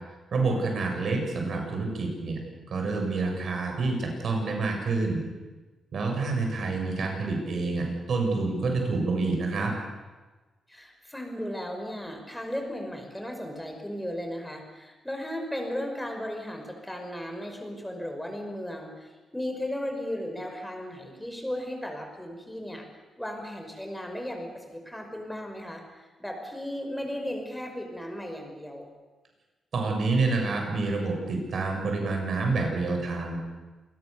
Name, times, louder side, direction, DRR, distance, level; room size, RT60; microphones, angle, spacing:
voice 1, 0.3-2.4 2.7-5.2 5.9-9.7 29.7-33.4, right 3 dB, 60° right, 2 dB, 7.3 m, -28 dB
voice 2, 10.7-28.9, left 1 dB, 5° left, 3 dB, 5.5 m, -36 dB
27.5 x 20.5 x 7.0 m, 1.2 s
cardioid pair, 105°, 0 cm